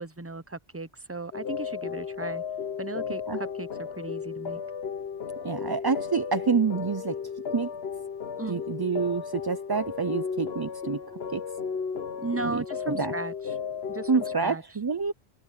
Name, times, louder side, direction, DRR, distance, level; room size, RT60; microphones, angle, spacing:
voice 1, 0.0-2.4 2.8-4.6 8.4-8.6 12.2-13.5 13.9-14.6, right 3 dB, 15° right, 0.7 m, -36 dB
sound 1, 1.3-14.4, left 6 dB, 65° left, 1.2 m, -34 dB
voice 2, 5.4-7.2 7.5-7.7 8.5-11.0 11.3-11.4 12.4-13.1 14.1-15.1, right 5 dB, 35° right, 0.4 m, -27 dB
omnidirectional pair, 1.1 m